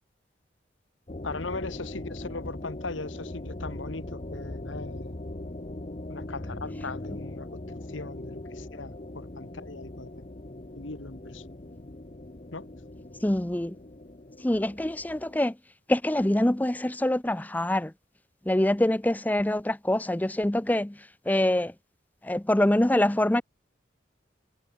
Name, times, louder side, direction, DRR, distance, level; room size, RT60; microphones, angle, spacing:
sound 1, 1.1-15.4, left 1 dB, 35° left, 1.0 m, -40 dB
voice 1, 1.2-5.3 6.1-10.3 10.8-11.5 12.5-12.7, left 3 dB, 85° left, 1.8 m, -39 dB
voice 2, 13.2-13.7 14.4-15.5 15.9-17.9 18.5-20.9 21.3-21.7 22.2-23.4, left 1 dB, 10° left, 0.5 m, -25 dB
head